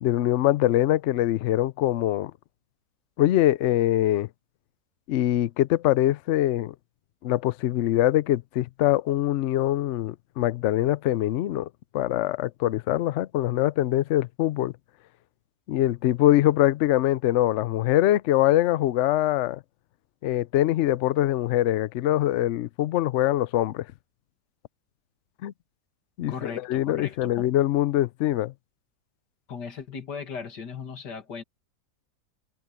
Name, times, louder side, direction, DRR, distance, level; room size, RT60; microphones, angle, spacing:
voice 1, 0.0-2.3 3.2-4.3 5.1-6.7 7.2-11.7 11.9-14.7 15.7-19.6 20.2-23.9 25.4-25.5 26.2-28.5, left 14 dB, 70° left, 0.6 m, -23 dB
voice 2, 26.3-27.5 29.5-31.4, left 6 dB, 90° left, 2.7 m, -37 dB
omnidirectional pair, 1.8 m